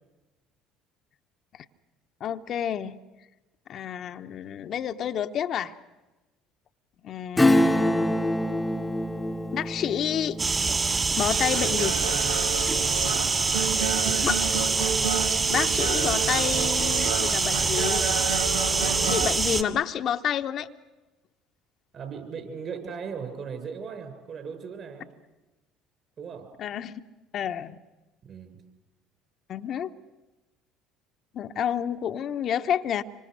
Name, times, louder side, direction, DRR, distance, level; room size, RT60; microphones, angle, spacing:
voice 1, 2.2-3.0 3.7-5.7 7.0-8.2 9.5-10.4 11.2-12.0 14.2-14.6 15.5-18.2 19.0-20.7 26.6-27.0 27.3-27.8 29.5-29.9 31.3-33.0, left 9 dB, 55° left, 8 dB, 1.0 m, -29 dB
Acoustic guitar / Strum, 7.4-13.6 13.9-14.0, left 1 dB, 10° left, 1.0 m, -26 dB
sound 1, 10.4-19.6, right 4 dB, 30° right, 2.6 m, -25 dB
Human voice / Acoustic guitar, 11.3-19.3, right 6 dB, 80° right, 1.6 m, -31 dB
voice 2, 13.5-14.2 21.9-25.1 26.2-26.5 28.2-28.6, right 6 dB, 45° right, 7 dB, 6.4 m, -38 dB
26.5 x 25.0 x 6.6 m, 1.1 s
hypercardioid pair, 65°, 0 cm